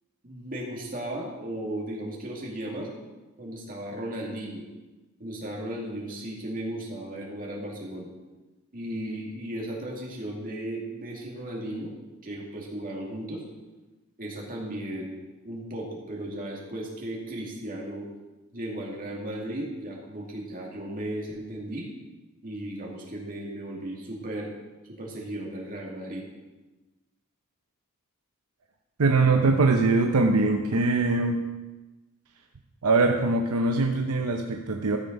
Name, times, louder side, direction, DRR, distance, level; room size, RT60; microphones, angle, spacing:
voice 1, 0.2-2.9 3.4-4.7 5.2-8.1 8.7-11.9 12.2-13.4 14.2-15.2 15.4-18.1 18.5-21.9 22.4-24.5 24.9-26.3, right 1 dB, 40° right, -2 dB, 2.5 m, -35 dB
voice 2, 29.0-31.5 32.8-35.0, right 3 dB, 75° right, 4 dB, 0.8 m, -22 dB
13.5 x 6.9 x 5.3 m, 1.2 s
head